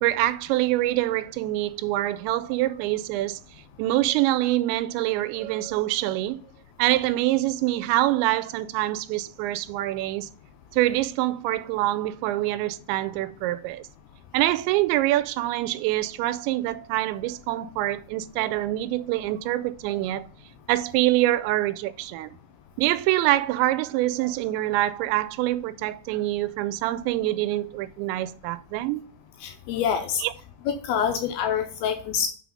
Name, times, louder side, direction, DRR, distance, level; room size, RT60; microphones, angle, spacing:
voice 1, 0.0-3.4 3.8-6.4 6.8-10.3 10.7-13.9 14.3-20.3 20.7-22.4 22.8-29.1 30.2-30.3, right 16 dB, 90° right, 2.8 m, -25 dB
voice 2, 29.4-30.2 30.8-32.3, left 7 dB, 80° left, 2.4 m, -26 dB
6.2 x 4.8 x 5.1 m
omnidirectional pair, 5.1 m